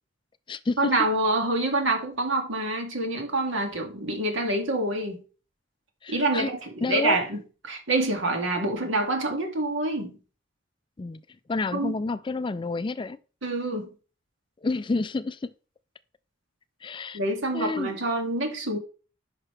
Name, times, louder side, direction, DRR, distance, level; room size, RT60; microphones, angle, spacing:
voice 1, 0.8-5.2 6.1-10.2 11.7-12.0 13.4-13.9 17.1-18.8, right 2 dB, 80° right, 2.4 m, -26 dB
voice 2, 6.0-6.5 6.8-7.2 11.0-11.2 11.5-13.2 14.6-15.4 16.8-17.2 17.5-17.9, left 3 dB, 25° left, 0.3 m, -29 dB
9.8 x 5.9 x 3.4 m
head